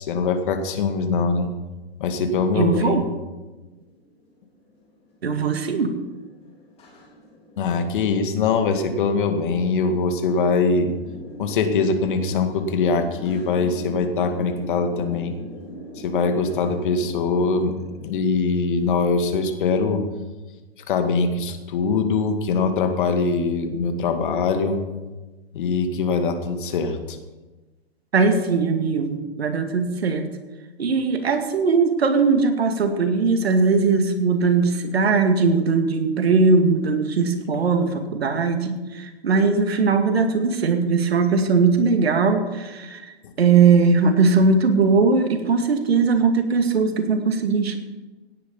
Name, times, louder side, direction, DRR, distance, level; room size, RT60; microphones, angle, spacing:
voice 1, 0.0-1.5 2.0-3.0 7.6-10.9 11.4-15.3 16.0-20.0 20.9-24.8 25.5-27.2, left 4 dB, 50° left, 6 dB, 2.2 m, -22 dB
voice 2, 2.5-3.1 5.2-5.9 28.1-30.3 30.8-47.8, right 4 dB, 70° right, 6 dB, 2.3 m, -20 dB
sound 1, 3.4-19.5, equal, 20° left, 3.7 m, -41 dB
17.0 x 10.0 x 5.5 m, 1.2 s
hypercardioid pair, 130°, 32 cm